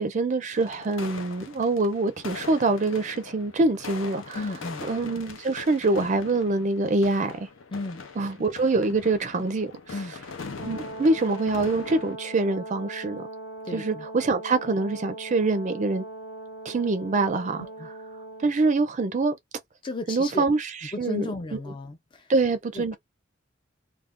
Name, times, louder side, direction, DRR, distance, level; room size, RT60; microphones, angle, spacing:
voice 1, 0.0-4.4 4.9-7.5 8.2-9.7 10.6-13.3 13.7-16.0 16.6-17.7 18.4-19.4 20.1-21.2 22.3-23.0, right 3 dB, 40° right, 0.4 m, -25 dB
sound 1, 0.5-12.2, left 4 dB, 80° left, 0.6 m, -41 dB
voice 2, 4.4-4.9 7.7-8.0 9.9-10.1 13.6-14.1 17.6-17.9 19.8-20.4 20.9-22.3 22.7-23.0, left 2 dB, 25° left, 0.4 m, -34 dB
Brass instrument, 10.5-18.5, right 2 dB, 55° left, 1.0 m, -40 dB
2.4 x 2.2 x 3.5 m
head